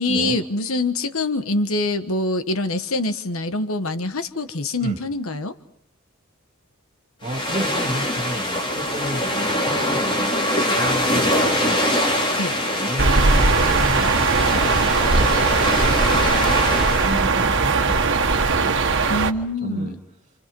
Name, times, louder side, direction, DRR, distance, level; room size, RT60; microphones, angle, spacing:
voice 1, 0.0-5.5 12.4-12.6 19.1-20.0, left 2 dB, 75° left, 10 dB, 1.3 m, -25 dB
sound 1, 7.2-17.2, left 1 dB, 25° left, 4.2 m, -23 dB
voice 2, 7.2-11.8 12.2-16.2 17.0-18.1 18.6-18.7 19.6-20.0, right 1 dB, 35° right, 3 dB, 2.6 m, -32 dB
sound 2, 13.0-19.3, right 4 dB, 60° right, 1.6 m, -19 dB
28.5 x 28.5 x 5.4 m, 0.66 s
head